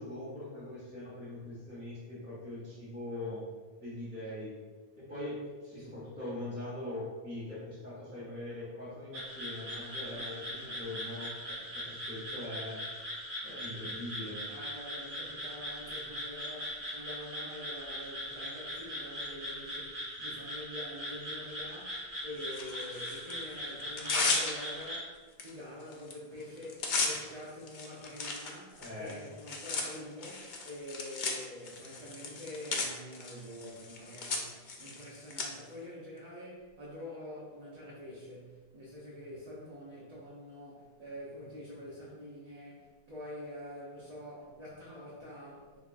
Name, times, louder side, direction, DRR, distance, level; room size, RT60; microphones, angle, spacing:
voice 1, 0.0-3.4 3.8-4.5 5.0-12.8 13.4-14.4 28.8-29.2, left 1 dB, 10° right, -10 dB, 1.0 m, -42 dB
voice 2, 5.7-6.0 10.0-10.9 14.5-45.8, left 1 dB, 45° right, -7 dB, 0.7 m, -46 dB
sound 1, 9.1-25.0, equal, 80° right, 1.4 m, -40 dB
Tearing, 22.5-23.3 23.8-24.9 25.4-25.5 25.8-26.1 26.4-35.4, left 3 dB, 60° left, 0.6 m, -36 dB
3.7 x 3.5 x 2.3 m, 1.4 s
omnidirectional pair, 1.1 m